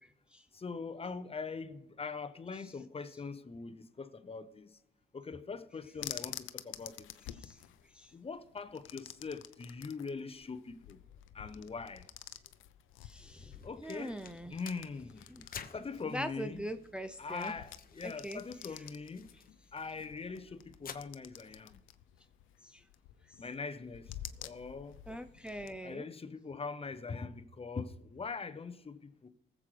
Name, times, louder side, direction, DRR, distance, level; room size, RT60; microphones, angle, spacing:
voice 1, 0.5-4.8 5.1-7.1 8.1-11.0 11.3-12.1 13.6-14.2 14.5-16.7 17.2-19.3 19.7-21.8 23.4-25.0 25.8-29.3, left 4 dB, 30° left, 1.0 m, -42 dB
sound 1, 6.0-25.8, left 13 dB, 85° left, 0.6 m, -50 dB
voice 2, 13.0-14.6 15.3-15.7 16.0-17.5 18.0-18.4 22.6-22.8 25.1-26.1, equal, 5° right, 0.6 m, -42 dB
sound 2, 13.5-20.9, left 7 dB, 45° left, 1.1 m, -53 dB
19.5 x 7.7 x 3.3 m
cardioid pair, 90°, 20 cm